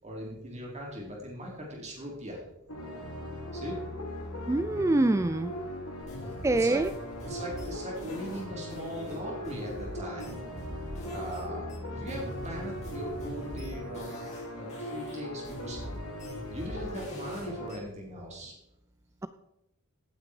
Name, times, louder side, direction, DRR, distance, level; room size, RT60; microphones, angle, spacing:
voice 1, 0.0-2.4 3.5-3.8 6.5-6.8 7.2-10.3 11.1-15.8 16.5-18.5, equal, 30° right, -2 dB, 4.6 m, -40 dB
sound 1, 2.7-17.7, left 1 dB, 80° left, 2.8 m, -39 dB
voice 2, 4.5-5.5 6.4-6.9, right 2 dB, 15° right, 12 dB, 0.4 m, -25 dB
sound 2, 6.0-11.4 11.7-14.4 14.7-17.8, equal, 30° left, 5.9 m, -43 dB
17.5 x 8.6 x 4.9 m, 0.83 s
head